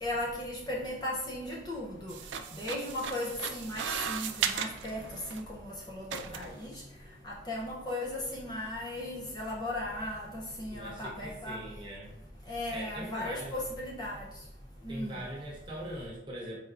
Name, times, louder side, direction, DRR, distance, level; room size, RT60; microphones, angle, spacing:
voice 1, 0.0-2.1 2.5-5.0 5.3-6.8 7.2-11.6 12.5-14.3 14.8-15.2, left 1 dB, 20° left, -4 dB, 0.5 m, -36 dB
sound 1, 2.1-5.5 6.1-6.6, right 8 dB, 80° right, 0.3 m, -36 dB
voice 2, 10.7-12.1 12.7-13.5 14.9-16.6, right 1 dB, 25° right, -4 dB, 0.9 m, -41 dB
4.3 x 3.3 x 2.4 m, 0.91 s
head